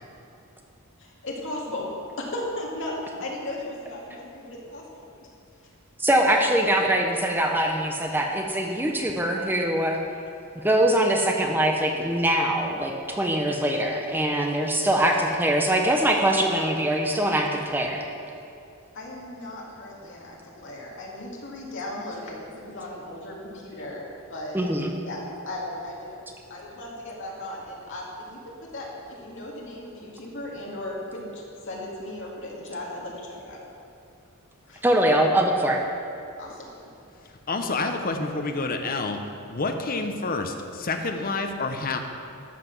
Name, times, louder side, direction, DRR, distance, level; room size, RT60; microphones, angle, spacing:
voice 1, 1.0-1.9 2.2-5.0 18.9-24.6 25.0-26.2 26.5-33.6 34.7-34.8 36.4-36.9, left 1 dB, 60° left, -3 dB, 2.3 m, -36 dB
voice 2, 6.0-10.0 10.5-18.0 24.5-25.0 34.8-35.8, right 1 dB, 10° right, 1 dB, 0.8 m, -23 dB
voice 3, 37.5-39.2 39.5-42.0, left 3 dB, 45° left, 5 dB, 0.9 m, -28 dB
13.5 x 5.8 x 6.1 m, 2.7 s
head